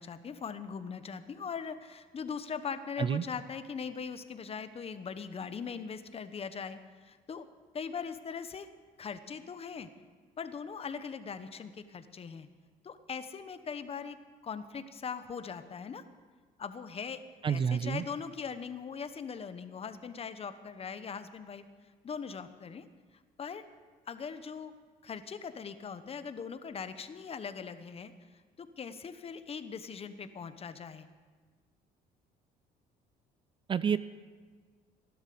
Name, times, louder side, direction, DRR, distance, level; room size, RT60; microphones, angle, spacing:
voice 1, 0.0-7.5 7.7-8.7 9.0-9.9 10.4-12.5 12.8-14.2 14.4-16.0 16.6-17.2 17.5-21.6 22.0-22.8 23.4-23.6 24.1-24.7 25.0-28.1 28.6-31.1, left 6 dB, 35° left, 11 dB, 1.0 m, -40 dB
voice 2, 17.4-18.0 33.7-34.0, right 7 dB, 30° right, 15 dB, 0.4 m, -28 dB
16.5 x 11.5 x 6.9 m, 1.5 s
cardioid pair, 110°, 17 cm